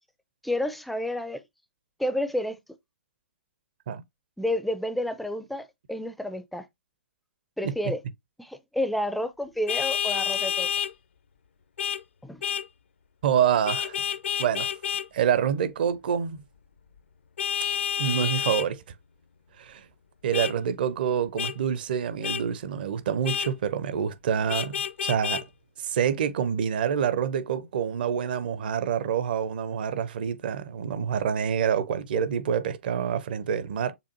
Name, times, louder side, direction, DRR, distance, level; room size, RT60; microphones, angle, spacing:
voice 1, 0.4-1.4 2.0-2.6 4.4-6.7 7.6-8.0 8.4-10.7 12.2-12.4, left 1 dB, ahead, 0.4 m, -30 dB
Vehicle horn car horn honking, 9.7-10.9 11.8-12.0 12.4-12.7 13.7-15.1 17.4-18.7 20.3-20.5 21.4-21.5 22.2-22.4 23.2-23.5 24.5-25.4, left 8 dB, 60° left, 0.5 m, -29 dB
voice 2, 13.2-14.0 14.4-14.7 15.1-16.4 18.0-18.8 19.6-19.8 20.2-25.5 25.8-33.9, right 8 dB, 45° right, 0.6 m, -27 dB
6.8 x 2.4 x 2.6 m
figure-of-eight pair, 120°, 7 cm